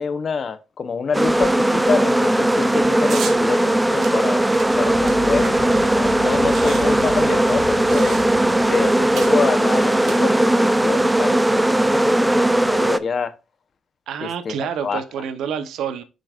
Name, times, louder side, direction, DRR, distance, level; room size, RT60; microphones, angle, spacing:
voice 1, 0.0-4.5 4.8-8.2 8.7-13.3 14.2-15.0, left 5 dB, 45° left, 0.8 m, -27 dB
sound 1, 1.1-13.0, right 1 dB, 10° right, 0.4 m, -18 dB
sound 2, 3.1-3.4 4.0-5.8 6.1-6.2 6.4-8.5 9.2-9.4 9.9-10.7, right 6 dB, 65° right, 1.2 m, -35 dB
sound 3, 4.5-9.7, left 7 dB, 75° left, 0.7 m, -37 dB
voice 2, 14.1-16.0, right 8 dB, 80° right, 0.8 m, -28 dB
7.2 x 5.3 x 2.5 m
cardioid pair, 90°, 0 cm